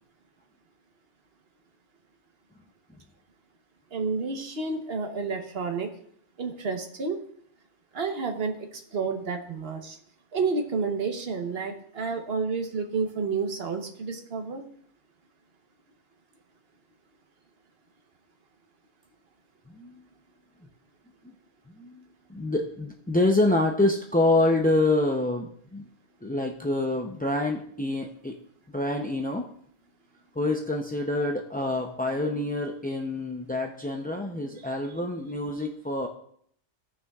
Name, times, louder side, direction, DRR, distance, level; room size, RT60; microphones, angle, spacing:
voice 1, 3.9-5.9 6.4-7.2 7.9-10.0 10.3-14.6, right 4 dB, 55° right, 4 dB, 1.2 m, -30 dB
voice 2, 22.3-25.9 26.2-28.4 28.7-29.5 30.4-36.1, left 2 dB, 15° left, 1 dB, 0.3 m, -26 dB
16.5 x 6.2 x 2.4 m, 0.65 s
omnidirectional pair, 1.2 m